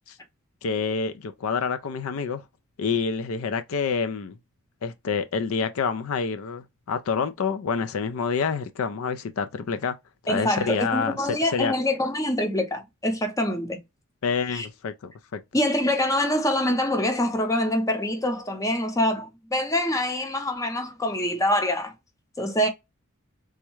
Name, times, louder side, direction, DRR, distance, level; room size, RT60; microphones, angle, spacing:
voice 1, 0.6-2.4 2.8-4.4 4.8-10.0 10.3-11.3 11.5-11.7 14.2-15.4, left 5 dB, 65° left, 0.4 m, -27 dB
voice 2, 10.3-13.8 14.5-14.7 15.5-21.9 22.4-22.7, left 1 dB, 15° left, 0.6 m, -25 dB
3.5 x 2.1 x 3.0 m
head